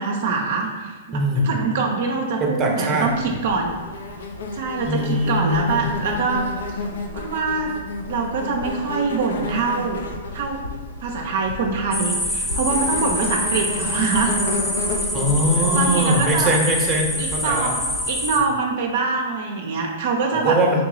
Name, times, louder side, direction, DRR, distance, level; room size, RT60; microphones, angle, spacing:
voice 1, 0.0-1.2 1.4-3.7 4.5-6.4 7.1-7.7 8.1-10.0 10.3-10.7 11.0-14.3 15.6-16.6 17.2-20.6, right 4 dB, 60° right, 1 dB, 0.5 m, -24 dB
voice 2, 1.1-1.5 2.4-3.1 4.9-5.8 15.1-17.7 20.3-20.8, right 1 dB, 25° right, 0 dB, 0.7 m, -21 dB
Insect, 3.0-18.2, left 3 dB, 70° left, 0.5 m, -32 dB
sound 1, 11.9-18.4, equal, 10° left, 0.6 m, -26 dB
3.5 x 3.0 x 3.8 m, 1.4 s
hypercardioid pair, 110°, 0 cm